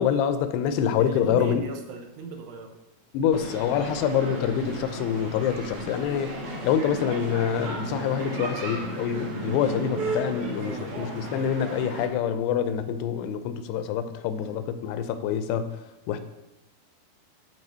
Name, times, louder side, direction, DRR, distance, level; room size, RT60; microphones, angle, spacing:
voice 1, 0.0-1.6 3.1-6.4 6.6-15.7 16.1-16.2, left 8 dB, 85° left, 10 dB, 2.6 m, -26 dB
voice 2, 1.0-2.8 10.6-11.0 14.3-14.6, right 5 dB, 85° right, 4 dB, 3.0 m, -39 dB
sound 1, 3.3-12.1, right 2 dB, 60° right, 3.9 m, -34 dB
11.5 x 4.1 x 4.3 m, 1.0 s
omnidirectional pair, 4.8 m